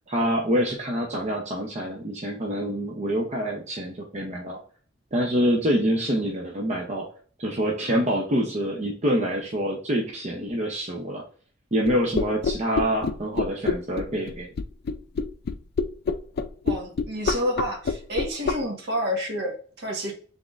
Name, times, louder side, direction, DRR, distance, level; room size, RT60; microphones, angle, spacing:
voice 1, 0.1-4.6 5.1-7.1 7.4-11.2 11.7-14.5, equal, 35° right, 0 dB, 0.7 m, -26 dB
sound 1, 11.8-18.5, left 5 dB, 55° left, 0.4 m, -25 dB
voice 2, 16.6-20.1, equal, 60° right, 1 dB, 1.3 m, -29 dB
5.9 x 3.6 x 2.5 m, 0.44 s
head